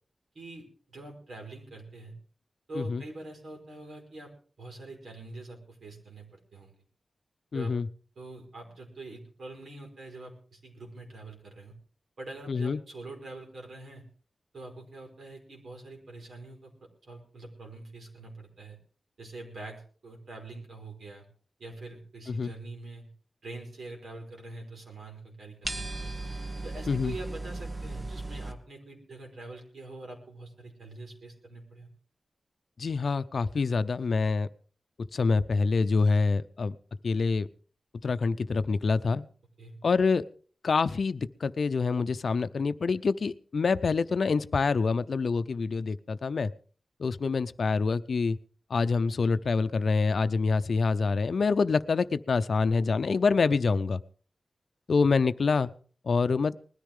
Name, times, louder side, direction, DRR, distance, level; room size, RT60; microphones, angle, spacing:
voice 1, 0.3-2.1 2.7-4.3 4.6-6.7 7.5-7.8 8.1-11.7 12.2-14.1 14.5-18.8 19.2-21.2 21.6-23.1 23.4-26.3 26.6-31.9 39.6-39.8, right 2 dB, 75° right, 2 dB, 5.0 m, -44 dB
voice 2, 7.5-7.9 12.5-12.8 22.3-22.5 26.9-27.1 32.8-34.5 35.1-36.7 37.0-37.5 38.0-39.3 39.8-40.2 40.6-46.5 47.0-48.4 48.7-54.0 54.9-55.7 56.1-56.5, left 4 dB, 65° left, 13 dB, 0.6 m, -26 dB
sound 1, 25.6-28.5, right 2 dB, 30° right, 1.4 m, -36 dB
20.5 x 13.5 x 3.7 m, 0.44 s
wide cardioid pair, 140°, 0 cm